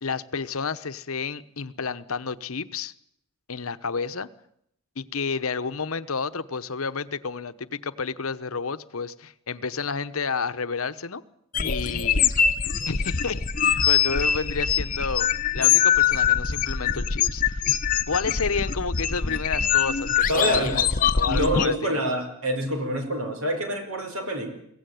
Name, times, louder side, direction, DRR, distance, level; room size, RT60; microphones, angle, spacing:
voice 1, 0.0-2.9 3.5-4.3 5.0-11.2 11.6-12.3 12.9-15.3 15.5-17.6 18.1-20.9 21.1-22.0, left 5 dB, 85° left, 13 dB, 1.0 m, -30 dB
sound 1, 11.5-21.7, left 8 dB, 40° left, 0.8 m, -23 dB
voice 2, 20.3-20.8 21.3-24.5, equal, 85° right, 6 dB, 4.9 m, -26 dB
23.0 x 16.5 x 9.3 m, 0.76 s
head